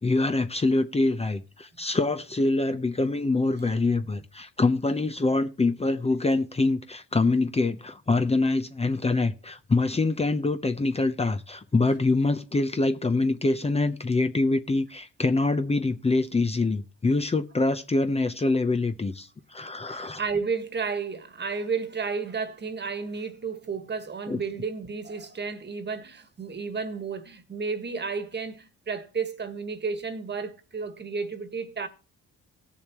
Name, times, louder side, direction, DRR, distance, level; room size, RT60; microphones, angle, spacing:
voice 1, 0.0-20.2 24.3-24.4, left 3 dB, 20° left, 0.8 m, -25 dB
voice 2, 19.9-31.9, right 5 dB, 35° right, 1.6 m, -32 dB
18.0 x 7.0 x 3.1 m
cardioid pair, 90°, 30 cm